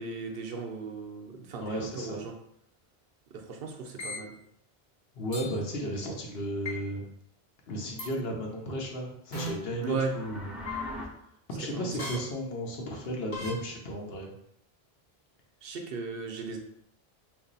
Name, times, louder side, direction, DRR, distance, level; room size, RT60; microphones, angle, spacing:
voice 1, 0.0-2.3 3.3-4.3 9.8-10.1 11.7-12.1 15.6-16.6, right 4 dB, 65° right, 3 dB, 0.7 m, -36 dB
voice 2, 1.6-2.3 5.1-7.0 7.7-10.6 11.5-14.3, equal, 70° left, 0 dB, 0.9 m, -34 dB
sound 1, 4.0-4.2 5.3-5.5 6.7-6.8 8.0-8.1 9.3-9.5 10.7-10.8 12.0-12.2 13.3-13.5, left 2 dB, 50° left, 1.2 m, -35 dB
sound 2, 9.7-11.1, left 1 dB, ahead, 0.3 m, -41 dB
3.0 x 2.5 x 3.9 m, 0.73 s
omnidirectional pair, 1.1 m